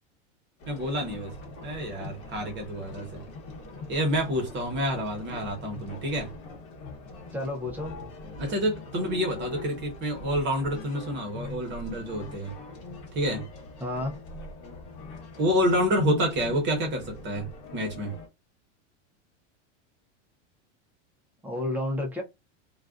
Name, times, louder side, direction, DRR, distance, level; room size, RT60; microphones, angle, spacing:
sound 1, 0.6-18.3, left 3 dB, 45° left, 1.1 m, -42 dB
voice 1, 0.7-1.3 1.6-3.2 3.9-6.3 8.4-12.5 13.1-13.5 15.4-17.5 17.7-18.1, equal, 30° right, 1.0 m, -28 dB
voice 2, 7.3-7.9 13.8-14.1 21.4-22.2, left 1 dB, 5° right, 0.4 m, -30 dB
2.4 x 2.2 x 2.4 m
supercardioid pair, 140°, 36 cm